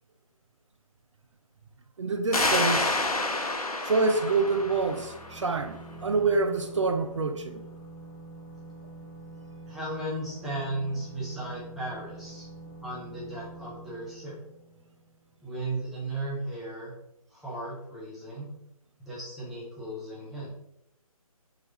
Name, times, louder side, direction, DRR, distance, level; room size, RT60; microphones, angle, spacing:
voice 1, 2.0-3.0 3.8-7.6, right 4 dB, 55° right, 0.5 m, -27 dB
sound 1, 2.3-5.7, left 2 dB, 75° left, 0.8 m, -29 dB
sound 2, 4.1-15.6, right 2 dB, 20° left, 1.7 m, -46 dB
voice 2, 9.7-12.5 12.8-14.4 15.4-16.9 17.3-18.5 19.0-20.5, right 2 dB, ahead, 0.5 m, -35 dB
4.3 x 4.0 x 2.9 m
figure-of-eight pair, 150°, 19 cm